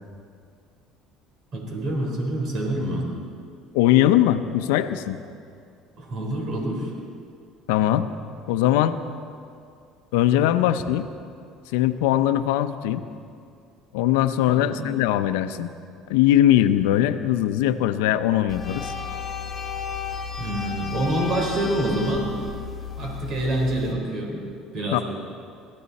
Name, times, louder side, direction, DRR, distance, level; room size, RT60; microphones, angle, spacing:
voice 1, 1.5-3.0 6.0-6.9 14.5-14.8 20.4-22.4 23.0-24.4 24.7-25.0, right 1 dB, 50° right, 0 dB, 4.4 m, -26 dB
voice 2, 3.7-5.2 7.7-8.1 8.5-9.0 10.1-11.1 11.7-13.0 13.9-15.7 16.1-18.9 24.9-25.0, left 12 dB, 90° left, 10 dB, 0.7 m, -20 dB
sound 1, 18.5-23.9, left 5 dB, 20° left, 2.3 m, -33 dB
22.0 x 15.5 x 4.2 m, 2.3 s
supercardioid pair, 110°, 0 cm